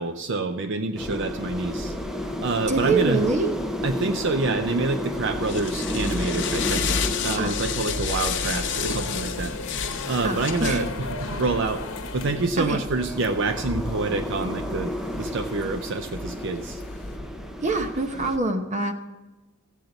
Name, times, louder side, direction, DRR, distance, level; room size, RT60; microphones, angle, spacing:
voice 1, 0.0-1.9 2.4-3.2 3.8-6.9 7.2-9.5 10.1-16.8, right 3 dB, 65° right, 8 dB, 0.6 m, -27 dB
sound 1, 1.0-18.4, left 1 dB, ahead, 0.6 m, -33 dB
voice 2, 2.7-3.5 7.4-7.6 10.2-10.8 12.6-12.8 17.6-18.9, right 3 dB, 35° right, 7 dB, 0.9 m, -25 dB
sound 2, 4.7-17.2, left 6 dB, 65° left, 0.8 m, -32 dB
sound 3, 6.4-12.5, left 3 dB, 90° left, 0.9 m, -35 dB
15.0 x 8.3 x 4.0 m, 1.1 s
head